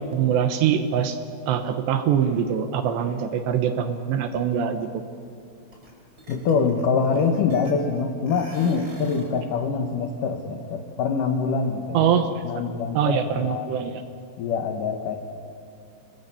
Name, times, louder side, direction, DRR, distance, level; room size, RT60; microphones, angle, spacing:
voice 1, 0.1-1.2 1.5-5.0 11.9-12.6 12.9-13.9, right 8 dB, 75° right, 8 dB, 2.8 m, -23 dB
sound 1, 5.7-5.9 6.2-8.0 8.3-9.4, left 1 dB, 20° right, 5.7 m, -40 dB
voice 2, 6.3-12.1 12.4-13.7 14.4-15.2, left 5 dB, 90° left, 5 dB, 1.8 m, -24 dB
28.0 x 20.5 x 8.4 m, 2.4 s
omnidirectional pair, 5.8 m